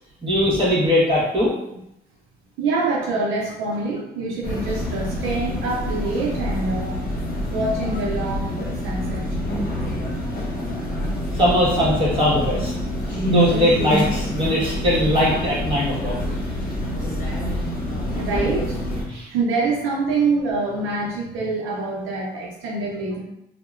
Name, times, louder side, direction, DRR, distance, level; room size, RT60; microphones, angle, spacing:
voice 1, 0.2-1.5 11.3-12.7 13.3-16.1 18.1-18.4 19.1-19.3, left 1 dB, 25° right, -7 dB, 1.3 m, -20 dB
voice 2, 2.6-7.0 7.5-9.2 18.1-23.2, right 3 dB, 90° right, -3 dB, 0.6 m, -25 dB
sound 1, 4.4-19.0, equal, 45° left, 0.9 m, -26 dB
2.7 x 2.1 x 2.4 m, 0.82 s
cardioid pair, 90°, 20 cm